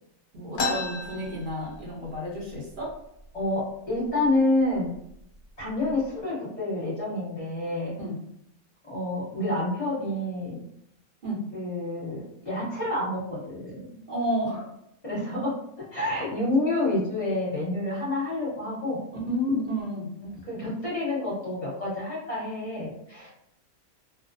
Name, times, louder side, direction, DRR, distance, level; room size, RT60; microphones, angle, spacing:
voice 1, 0.3-2.9 8.0-8.1 11.2-11.4 14.1-14.7 19.3-20.1, equal, 45° right, -4 dB, 0.8 m, -30 dB
sound 1, 0.5-2.2 2.5-2.6 2.9-3.5 4.1-4.2 4.9-5.1 5.6-6.0, left 3 dB, 65° left, 0.7 m, -32 dB
voice 2, 3.3-4.9 5.6-7.9 8.8-10.6 11.5-13.8 15.0-15.6 15.9-19.0 20.3-23.3, left 2 dB, 25° left, -7 dB, 1.1 m, -28 dB
2.5 x 2.0 x 2.6 m, 0.76 s
omnidirectional pair, 1.5 m